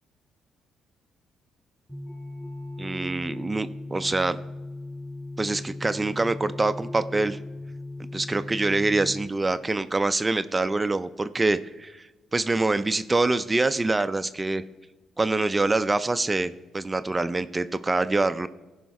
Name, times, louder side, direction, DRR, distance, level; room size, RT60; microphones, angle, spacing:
sound 1, 1.9-9.3, left 2 dB, 5° left, 1.8 m, -38 dB
voice 1, 2.8-4.4 5.4-7.4 8.1-14.6 15.2-18.5, right 2 dB, 20° right, 12 dB, 0.4 m, -25 dB
15.5 x 5.6 x 4.7 m, 1.2 s
cardioid pair, 90°, 0 cm